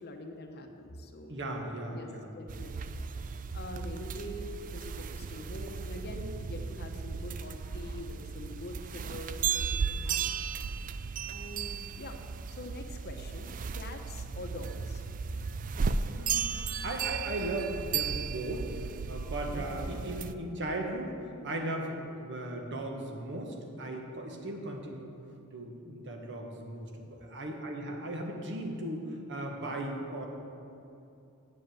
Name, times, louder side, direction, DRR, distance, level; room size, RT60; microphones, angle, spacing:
voice 1, 0.0-1.3 1.9-2.1 2.3-2.9 3.5-10.3 11.3-12.2 12.5-15.0 19.5-19.6, left 1 dB, 45° left, 5 dB, 0.9 m, -44 dB
voice 2, 1.3-2.3 10.8-11.0 16.0-16.5 16.8-18.7 19.1-21.2 21.4-25.1 25.5-30.3, right 1 dB, 55° right, 2 dB, 1.4 m, -37 dB
sound 1, 2.5-20.3, right 6 dB, 35° right, 0.4 m, -35 dB
9.1 x 7.8 x 7.7 m, 2.7 s
head